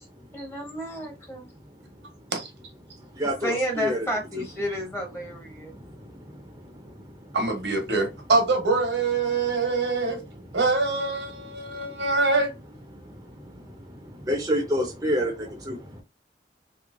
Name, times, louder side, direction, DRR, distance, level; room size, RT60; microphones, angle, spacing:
voice 1, 0.3-1.5 3.2-5.7, equal, 15° left, 0.9 m, -31 dB
voice 2, 3.2-4.0 14.3-15.8, equal, 20° right, 0.6 m, -26 dB
voice 3, 7.3-10.2 10.5-12.5, right 3 dB, 80° right, 1.1 m, -24 dB
3.0 x 2.7 x 2.6 m
head